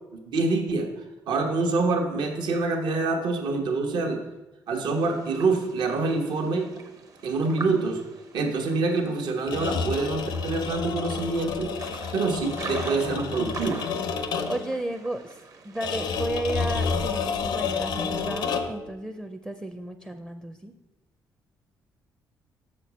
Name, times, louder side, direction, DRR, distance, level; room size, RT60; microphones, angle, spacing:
voice 1, 0.1-4.2 4.7-6.7 7.2-8.0 8.3-11.7 12.1-13.9, right 3 dB, 75° right, 3 dB, 1.0 m, -26 dB
sound 1, 5.0-16.2, right 4 dB, 50° right, 0.9 m, -43 dB
sound 2, 9.4-14.8 15.8-18.9, left 5 dB, 85° left, 0.7 m, -30 dB
voice 2, 14.5-20.7, right 1 dB, 10° right, 7 dB, 0.5 m, -33 dB
6.3 x 4.4 x 6.1 m, 1.0 s
cardioid pair, 85°, 8 cm